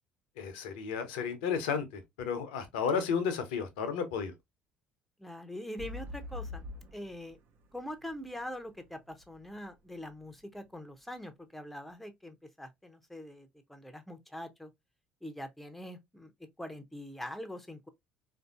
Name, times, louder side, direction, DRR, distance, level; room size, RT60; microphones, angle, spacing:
voice 1, 0.4-4.3, left 6 dB, 65° left, 0.6 m, -33 dB
voice 2, 5.2-6.6 6.9-7.4 7.7-14.7 15.2-16.3 16.6-17.9, left 1 dB, 5° left, 0.6 m, -43 dB
sound 1, 5.8-9.7 10.2-10.3, left 2 dB, 45° right, 0.5 m, -44 dB
3.5 x 2.6 x 2.4 m
figure-of-eight pair, 55°, 5 cm